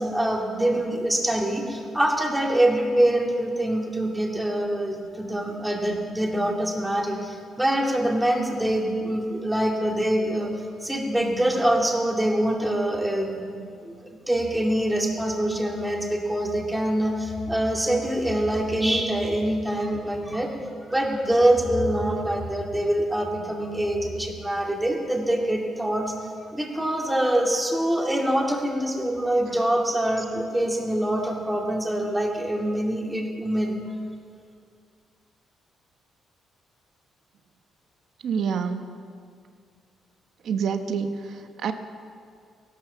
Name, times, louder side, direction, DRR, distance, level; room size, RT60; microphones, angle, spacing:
voice 1, 0.0-10.5 10.8-13.9 14.3-20.5 20.8-26.1 26.5-33.8, right 1 dB, 5° right, 0 dB, 2.5 m, -24 dB
voice 2, 38.2-38.9 40.4-41.7, right 6 dB, 65° right, 8 dB, 0.9 m, -27 dB
16.0 x 12.0 x 7.2 m, 2.3 s
cardioid pair, 90°, 0 cm